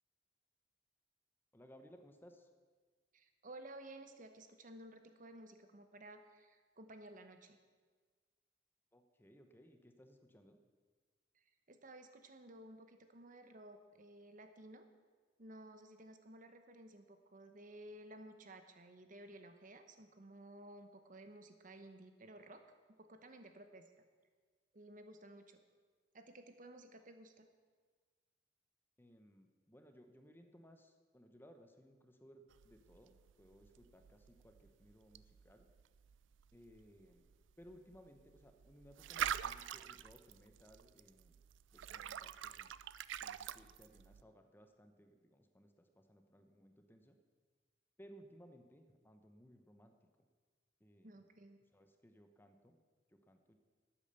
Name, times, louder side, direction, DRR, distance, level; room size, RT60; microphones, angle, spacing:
voice 1, 1.5-2.5 8.9-10.6 29.0-35.7 36.5-37.3 37.6-41.4 41.7-42.7 43.2-47.2 48.0-49.9 50.8-51.2 51.7-52.8 53.1-53.6, equal, 10° left, 6 dB, 0.9 m, -62 dB
voice 2, 3.1-7.6 11.3-14.9 15.4-22.6 23.0-23.9 24.7-25.6 26.1-27.5 51.0-51.6, right 1 dB, 45° right, 7 dB, 1.0 m, -55 dB
sound 1, 32.5-44.2, right 9 dB, 80° right, 0.4 m, -46 dB
12.0 x 8.6 x 6.9 m, 1.5 s
head